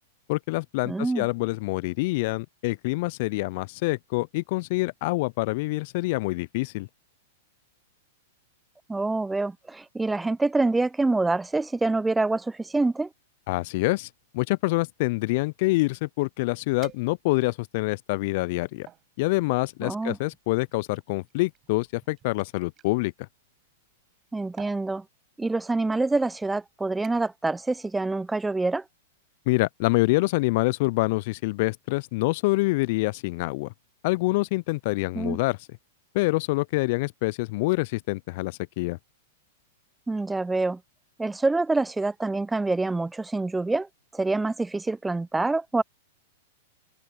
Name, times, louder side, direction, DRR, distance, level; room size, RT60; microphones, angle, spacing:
voice 1, 0.3-6.9 13.5-14.1 14.3-18.9 19.2-23.1 29.5-33.7 34.0-35.6 36.1-39.0, left 23 dB, 55° left, 0.3 m, -26 dB
voice 2, 0.9-1.3 8.9-13.1 19.8-20.2 24.3-25.0 25.4-28.8 35.1-35.4 40.1-40.8 41.2-45.8, right 3 dB, 10° right, 0.4 m, -26 dB
sound 1, 16.8-17.6 18.2-19.1 20.0-22.9 24.0-24.2 24.6-24.9 25.8-25.9 26.3-26.6 27.0-27.4 27.8-28.1 28.5-28.6, right 12 dB, 30° right, 4.7 m, -51 dB
hypercardioid pair, 105°, 0 cm